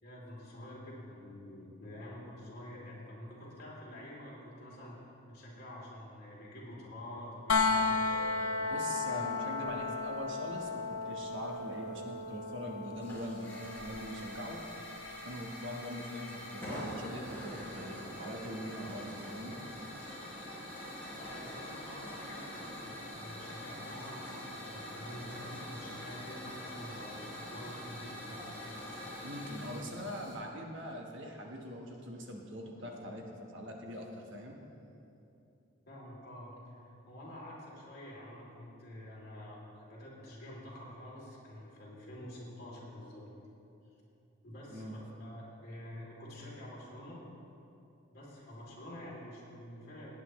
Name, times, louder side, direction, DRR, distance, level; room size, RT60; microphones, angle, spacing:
voice 1, 0.0-5.0 5.3-8.4 9.1-9.3 21.2-28.5 32.8-32.9 35.9-43.2 44.4-47.2 48.1-50.1, left 1 dB, 45° left, -5 dB, 2.9 m, -48 dB
sound 1, 7.5-19.3 21.2-21.3, left 4 dB, 90° left, 0.7 m, -36 dB
voice 2, 8.7-14.6 15.2-19.6 29.2-34.6 44.7-45.0, equal, 55° right, 1 dB, 1.2 m, -42 dB
Hiss / Fire, 13.0-30.3, left 1 dB, 10° left, 2.9 m, -45 dB
17.5 x 9.3 x 3.1 m, 2.8 s
head